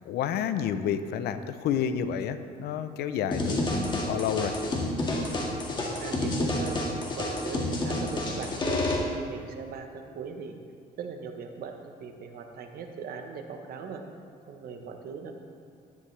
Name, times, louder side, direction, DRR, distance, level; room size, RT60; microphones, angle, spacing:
voice 1, 0.1-4.5, left 8 dB, 70° left, 11 dB, 0.6 m, -30 dB
sound 1, 3.3-8.9, left 2 dB, 25° left, 1.8 m, -29 dB
voice 2, 6.0-6.9 7.2-10.6 11.0-14.0 14.5-15.3, right 5 dB, 65° right, 5 dB, 1.0 m, -39 dB
12.0 x 9.6 x 3.3 m, 2.2 s
cardioid pair, 110°, 17 cm